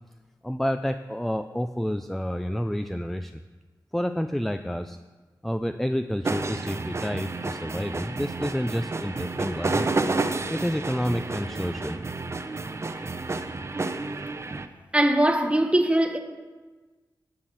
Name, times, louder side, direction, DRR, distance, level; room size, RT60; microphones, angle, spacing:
voice 1, 0.4-3.4 3.9-5.0 5.4-9.9 10.5-12.0, equal, 5° left, 0.4 m, -29 dB
sound 1, 6.2-14.7, right 3 dB, 35° right, 0.7 m, -30 dB
voice 2, 14.9-16.2, right 1 dB, 15° right, 1.0 m, -21 dB
11.5 x 6.6 x 6.0 m
wide cardioid pair, 85°, 8 cm